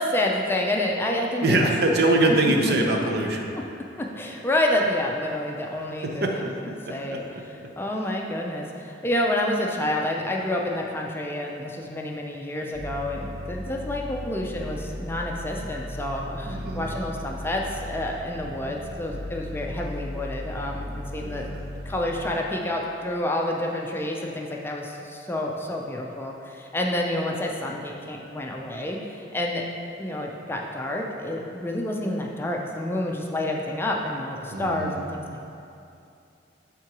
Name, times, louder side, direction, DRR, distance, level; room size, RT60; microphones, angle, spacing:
voice 1, 0.0-1.7 2.2-3.0 3.9-7.2 7.8-29.6 30.0-35.5, left 1 dB, 15° left, 0 dB, 0.4 m, -29 dB
voice 2, 1.4-3.5 6.0-6.4 6.9-7.2 16.5-16.9 21.2-21.6 34.5-35.0, right 2 dB, 60° right, 1 dB, 0.7 m, -23 dB
sound 1, 12.7-22.3, left 1 dB, 35° left, 1.0 m, -36 dB
5.8 x 3.8 x 5.9 m, 2.7 s
head